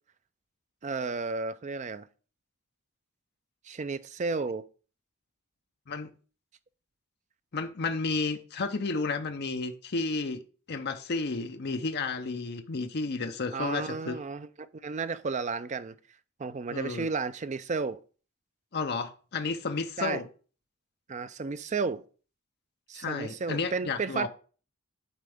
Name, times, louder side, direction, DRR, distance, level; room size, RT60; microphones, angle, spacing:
voice 1, 0.8-2.1 3.7-4.6 13.5-15.9 16.4-18.0 20.0-20.2 21.1-22.0 22.9-24.3, right 4 dB, 35° right, 0.4 m, -33 dB
voice 2, 7.5-10.4 10.7-14.2 16.7-17.1 18.7-20.3 22.9-24.3, left 3 dB, 45° left, 0.6 m, -32 dB
11.0 x 4.3 x 3.5 m
head